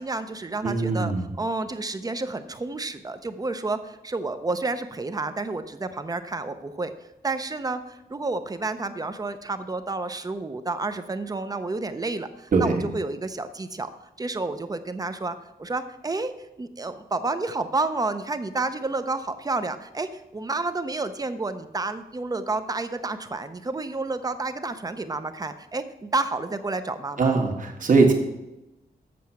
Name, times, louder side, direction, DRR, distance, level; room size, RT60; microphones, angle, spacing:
voice 1, 0.0-1.1 1.4-6.9 7.2-13.9 14.2-16.3 16.6-27.4, right 3 dB, 25° right, 10 dB, 0.5 m, -30 dB
voice 2, 0.6-1.3 12.5-12.9 27.2-28.1, right 4 dB, 55° right, 2 dB, 1.4 m, -21 dB
7.6 x 6.4 x 7.1 m, 0.95 s
wide cardioid pair, 175°, 16 cm